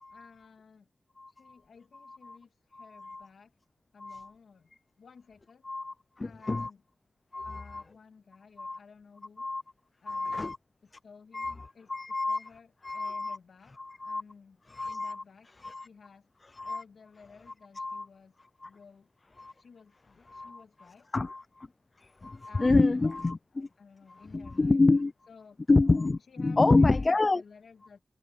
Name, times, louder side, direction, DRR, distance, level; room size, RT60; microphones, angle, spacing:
voice 1, 0.1-0.9 1.3-3.6 3.9-5.7 6.2-6.8 7.4-9.5 10.0-10.4 10.8-13.7 14.0-14.6 14.8-15.6 15.8-19.1 19.6-21.1 22.4-23.2 23.5-24.8 25.3-25.6 26.3-28.0, left 5 dB, 80° left, 2.4 m, -55 dB
voice 2, 1.2-1.5 2.0-2.4 2.7-3.3 4.0-4.3 5.6-6.7 7.3-7.8 8.6-8.8 9.4-9.6 10.1-10.6 11.3-11.5 11.9-12.5 12.8-13.4 13.8-14.2 14.7-15.2 15.6-15.9 16.6-16.8 17.8-18.1 18.6-18.7 19.4-19.5 20.3-20.6 21.1-21.7 22.0-23.7 24.1-25.1 25.7-27.4, left 3 dB, 35° left, 0.4 m, -28 dB
cardioid pair, 70°, 0 cm